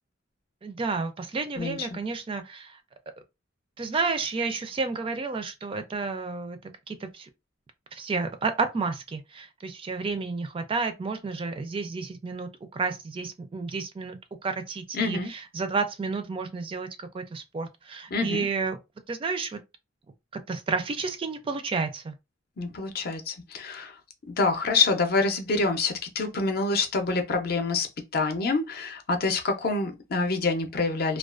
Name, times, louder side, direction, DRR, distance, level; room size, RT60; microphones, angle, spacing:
voice 1, 0.6-2.8 3.8-6.6 6.9-7.3 7.9-14.2 14.4-18.8 19.1-19.6 20.5-22.1, right 4 dB, 30° right, 0.3 m, -31 dB
voice 2, 1.5-2.0 14.9-15.3 18.1-18.5 22.6-24.0 24.3-27.9 28.1-31.2, left 3 dB, 55° left, 0.5 m, -26 dB
2.3 x 2.2 x 2.4 m
head